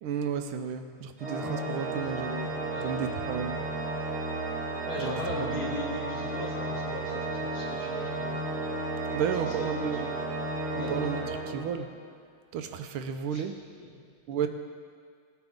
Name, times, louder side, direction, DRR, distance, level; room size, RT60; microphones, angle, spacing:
voice 1, 0.0-3.6 5.0-5.6 9.1-10.1 10.7-11.9 12.5-13.6 14.3-14.5, right 7 dB, 80° right, 8 dB, 1.5 m, -33 dB
Organ, 1.2-12.1, right 2 dB, 40° right, 2.6 m, -33 dB
voice 2, 4.8-8.3 10.1-10.2 10.8-11.0 13.3-13.4, left 2 dB, 70° left, -4 dB, 3.1 m, -37 dB
18.0 x 9.1 x 3.6 m, 2.1 s
omnidirectional pair, 2.4 m